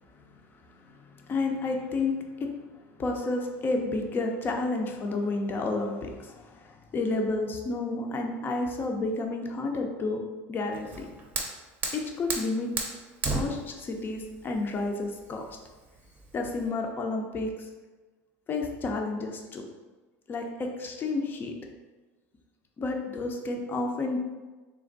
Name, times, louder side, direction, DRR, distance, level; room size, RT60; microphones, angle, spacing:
voice 1, 0.5-2.1 2.4-2.5 3.0-10.2 10.5-11.1 11.9-12.7 13.3-15.6 16.3-17.7 18.5-19.7 20.3-21.5 22.8-24.2, left 3 dB, 30° left, 3 dB, 0.6 m, -31 dB
Fire, 10.7-16.7, right 3 dB, 25° right, 0.8 m, -35 dB
3.4 x 3.1 x 3.9 m, 1.2 s
supercardioid pair, 120°, 7 cm